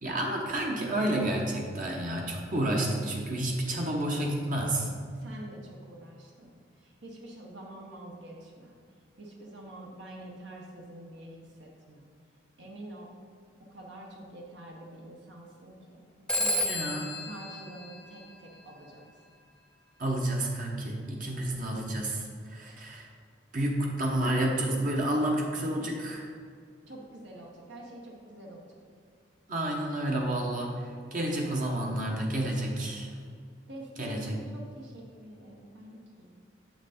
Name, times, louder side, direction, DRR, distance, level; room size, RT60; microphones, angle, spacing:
voice 1, 0.0-4.9 16.7-17.1 20.0-23.1 23.5-26.3 29.5-33.1 34.0-34.3, right 1 dB, 45° right, -1 dB, 1.0 m, -30 dB
voice 2, 5.1-8.7 9.2-12.0 12.6-13.1 13.6-19.0 26.9-28.6 33.7-36.4, right 1 dB, 70° right, -1 dB, 1.1 m, -46 dB
Telephone, 16.3-18.8, left 1 dB, 5° left, 0.5 m, -32 dB
7.5 x 5.9 x 4.3 m, 2.2 s
head